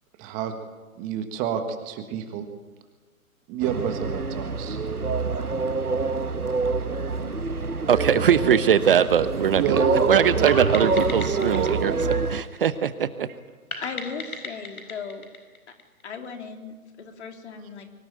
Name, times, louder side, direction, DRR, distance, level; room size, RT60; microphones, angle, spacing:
voice 1, 0.2-0.5 1.0-2.4 3.5-4.8 9.5-12.3, right 8 dB, 20° right, 7 dB, 1.5 m, -29 dB
sound 1, 3.6-12.4, right 3 dB, 90° right, 1.2 m, -26 dB
voice 2, 7.9-11.9 12.3-13.3, right 8 dB, 40° right, 14 dB, 0.9 m, -21 dB
sound 2, 10.5-13.0 13.7-16.3, left 3 dB, 75° left, 4.9 m, -37 dB
voice 3, 13.8-15.3 16.0-17.9, left 5 dB, 50° left, 4 dB, 3.5 m, -37 dB
24.0 x 17.0 x 9.0 m, 1.3 s
figure-of-eight pair, 130°, 44 cm